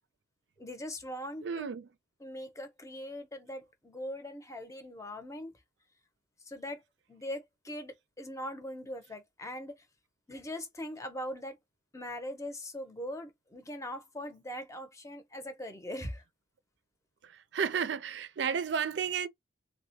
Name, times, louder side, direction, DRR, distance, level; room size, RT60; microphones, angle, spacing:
voice 1, 0.6-1.8 2.2-5.5 6.5-6.8 7.1-9.8 10.3-11.6 11.9-16.2, left 1 dB, 15° left, 0.7 m, -41 dB
voice 2, 1.4-1.9 17.5-19.3, right 7 dB, 70° right, 0.4 m, -32 dB
3.3 x 2.2 x 2.8 m
head